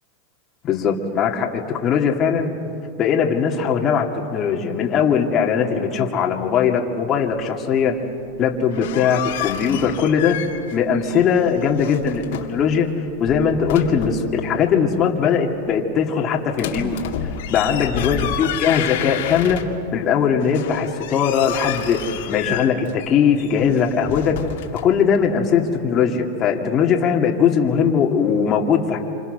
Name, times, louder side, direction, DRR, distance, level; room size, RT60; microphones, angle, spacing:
voice 1, 0.6-2.5 3.0-8.0 8.4-10.4 10.7-12.9 13.2-17.0 17.5-19.6 19.9-22.0 22.3-24.4 24.7-29.0, left 7 dB, 35° left, 0 dB, 2.5 m, -20 dB
sound 1, 8.5-10.8 11.0-12.6 13.1-14.3 16.5-20.0 20.4-24.8, left 9 dB, 70° left, 2.3 m, -30 dB
27.5 x 26.5 x 6.8 m, 2.7 s
supercardioid pair, 125°, 0 cm